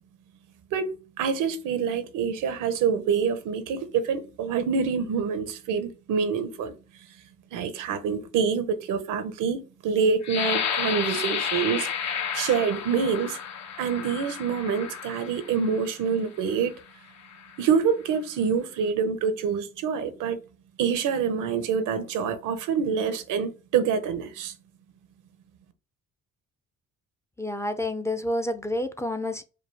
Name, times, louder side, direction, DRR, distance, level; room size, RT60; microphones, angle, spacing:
voice 1, 1.2-6.8 7.5-11.9 12.3-13.4 13.8-16.7 17.6-20.4 20.8-24.5, right 6 dB, 90° right, 0.9 m, -26 dB
sound 1, 10.2-15.9 16.5-16.7 17.2-17.6, left 8 dB, 65° left, 0.9 m, -31 dB
voice 2, 27.4-29.4, left 1 dB, 10° left, 0.4 m, -29 dB
5.0 x 2.3 x 3.3 m
cardioid pair, 90°, 30 cm